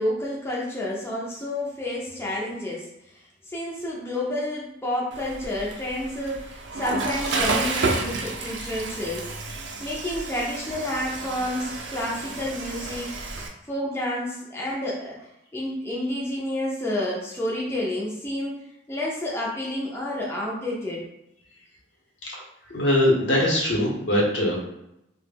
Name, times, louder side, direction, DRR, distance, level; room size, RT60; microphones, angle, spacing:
voice 1, 0.0-13.2 13.6-21.0, left 1 dB, 15° left, -4 dB, 0.4 m, -30 dB
Water / Toilet flush, 5.1-13.5, right 3 dB, 75° right, 0.4 m, -31 dB
voice 2, 22.7-24.6, left 1 dB, 75° left, -3 dB, 0.7 m, -22 dB
2.1 x 2.0 x 3.2 m, 0.85 s
head